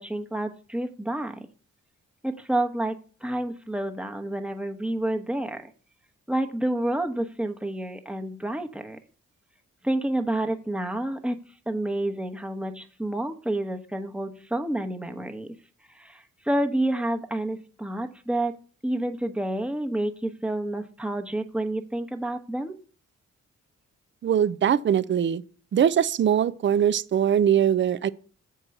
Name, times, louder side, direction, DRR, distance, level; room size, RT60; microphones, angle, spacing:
voice 1, 0.0-1.3 2.2-5.7 6.3-9.0 9.8-11.4 11.7-15.5 15.9-18.6 18.8-22.7, right 1 dB, 5° right, 1.1 m, -29 dB
voice 2, 24.2-25.4 25.7-28.1, right 9 dB, 40° right, 0.5 m, -22 dB
7.3 x 4.6 x 6.5 m
cardioid pair, 70°, 29 cm